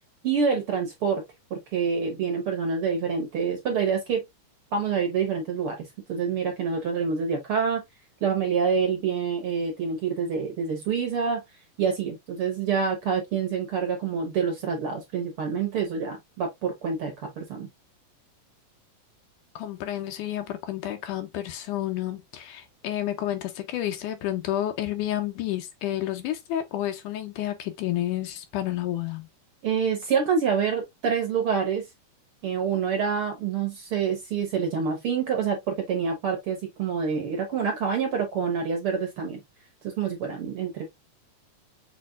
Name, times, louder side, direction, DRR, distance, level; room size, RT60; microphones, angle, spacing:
voice 1, 0.2-1.2 1.5-4.2 4.7-7.8 8.2-11.4 11.8-17.7 29.6-31.9 32.4-39.4 39.8-40.8, right 6 dB, 55° right, 1.7 m, -27 dB
voice 2, 19.6-29.3, left 13 dB, 80° left, 2.3 m, -30 dB
6.4 x 3.3 x 2.4 m
omnidirectional pair, 3.7 m